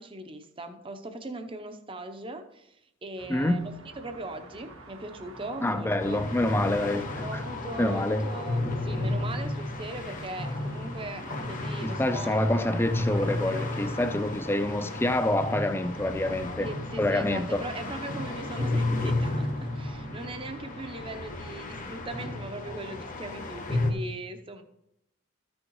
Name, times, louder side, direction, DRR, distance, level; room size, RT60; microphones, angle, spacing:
voice 1, 0.0-2.8 3.0-6.2 7.2-12.3 16.6-24.6, right 2 dB, 25° right, 0.7 m, -39 dB
sound 1, 3.2-21.4, right 2 dB, 75° right, 1.6 m, -50 dB
voice 2, 3.3-3.8 5.6-7.4 7.8-8.3 11.8-16.7 17.0-17.6, left 1 dB, 10° left, 0.5 m, -27 dB
sound 2, 6.0-23.9, left 2 dB, 40° left, 1.0 m, -33 dB
14.0 x 6.4 x 3.1 m
head